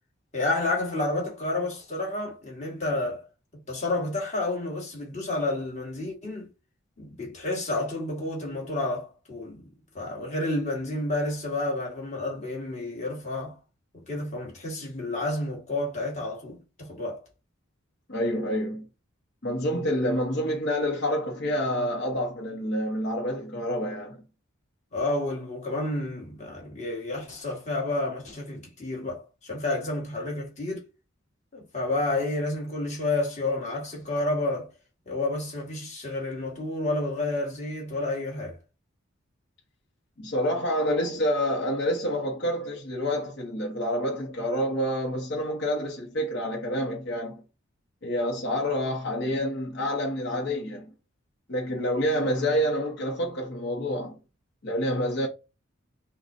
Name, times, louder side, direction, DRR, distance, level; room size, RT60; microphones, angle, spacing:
voice 1, 0.3-3.3 3.7-6.5 7.0-13.6 14.1-17.2 24.9-30.9 31.5-34.7 35.1-38.6, left 2 dB, 35° left, 1.8 m, -30 dB
voice 2, 18.1-18.8 19.4-24.2 40.2-47.4 48.0-50.8 51.5-54.2 54.6-55.3, equal, 55° left, 1.2 m, -28 dB
5.8 x 2.3 x 2.7 m
head